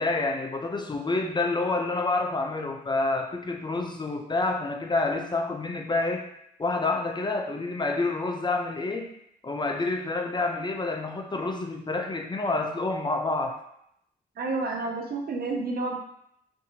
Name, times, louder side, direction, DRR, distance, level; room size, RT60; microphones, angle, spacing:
voice 1, 0.0-6.2 6.6-9.1 9.4-13.6, left 3 dB, 25° left, 3 dB, 0.4 m, -28 dB
voice 2, 14.4-16.0, right 3 dB, 60° right, 1 dB, 0.6 m, -30 dB
2.7 x 2.7 x 2.6 m, 0.75 s
cardioid pair, 55°, 18 cm